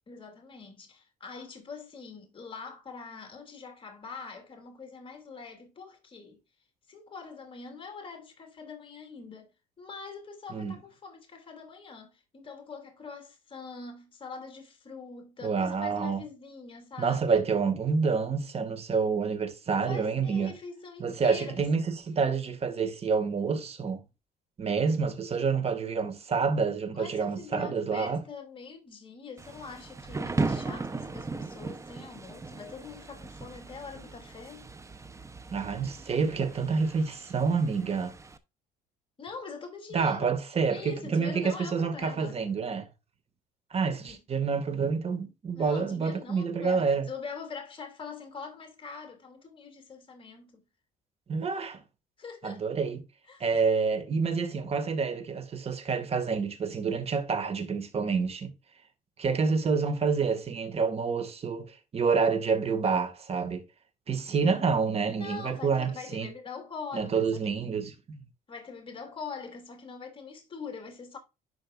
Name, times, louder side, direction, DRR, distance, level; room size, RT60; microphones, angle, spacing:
voice 1, 0.1-6.4 6.9-9.5 9.8-17.4 19.7-21.6 26.9-34.7 39.2-40.3 40.7-42.4 44.0-44.2 45.5-50.6 52.2-52.6 53.3-53.4 64.4-64.5 65.1-67.5 68.5-71.2, left 5 dB, 30° left, 2.9 m, -43 dB
voice 2, 15.4-16.2 17.0-20.5 21.0-24.0 24.6-28.2 35.5-38.1 39.9-42.9 43.7-47.1 51.3-51.8 52.4-53.0 53.4-58.5 59.2-63.6 64.1-66.3 66.9-68.2, right 5 dB, 35° right, 2.0 m, -28 dB
Thunder / Rain, 29.4-38.4, right 3 dB, 15° right, 0.9 m, -37 dB
11.0 x 5.2 x 2.5 m
cardioid pair, 110°, 17 cm